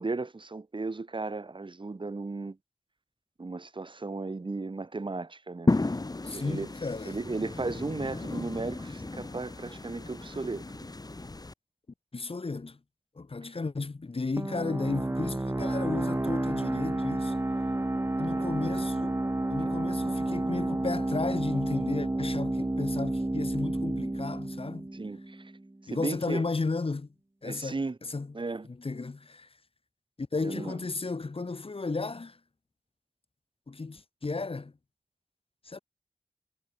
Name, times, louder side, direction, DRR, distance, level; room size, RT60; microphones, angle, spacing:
voice 1, 0.0-2.6 3.4-5.7 6.3-6.7 7.1-10.9 13.4-13.5 18.3-18.5 24.9-25.5 25.9-26.4 27.4-28.0 28.3-28.7 30.4-30.8, right 3 dB, 50° right, 1.5 m, -35 dB
sound 1, 5.7-11.5, left 2 dB, 35° left, 1.5 m, -33 dB
voice 2, 6.2-7.2 12.1-12.8 13.1-17.4 18.2-19.2 19.5-24.9 25.9-27.1 27.4-28.3 28.6-29.5 30.2-32.4 33.7-34.7 35.6-35.8, left 3 dB, 65° left, 3.2 m, -34 dB
sound 2, 14.4-25.7, right 1 dB, 25° right, 1.4 m, -30 dB
wide cardioid pair, 55°, 11 cm